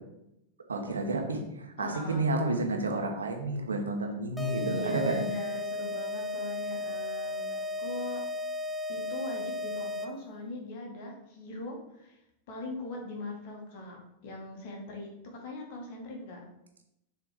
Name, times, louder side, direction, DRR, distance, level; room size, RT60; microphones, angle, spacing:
voice 1, 0.7-5.3, right 2 dB, 75° right, 3 dB, 1.1 m, -30 dB
voice 2, 1.8-2.3 4.6-8.2 8.9-12.2 12.5-14.0 14.2-16.4, left 2 dB, 50° left, 0 dB, 1.9 m, -40 dB
sound 1, 4.4-10.3, left 2 dB, 5° left, 0.5 m, -35 dB
6.8 x 3.7 x 4.9 m, 0.84 s
figure-of-eight pair, 90°, 0 cm